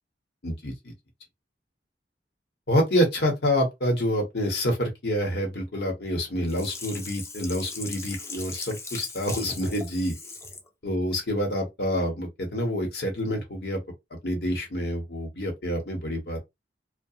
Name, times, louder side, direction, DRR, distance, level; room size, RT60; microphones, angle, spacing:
voice 1, 0.4-0.9 2.7-10.1 10.8-13.8 14.2-16.4, equal, 65° left, 1.0 m, -27 dB
Sink (filling or washing), 6.5-10.7 11.1-11.2, left 3 dB, 15° left, 0.4 m, -39 dB
2.4 x 2.1 x 2.7 m
head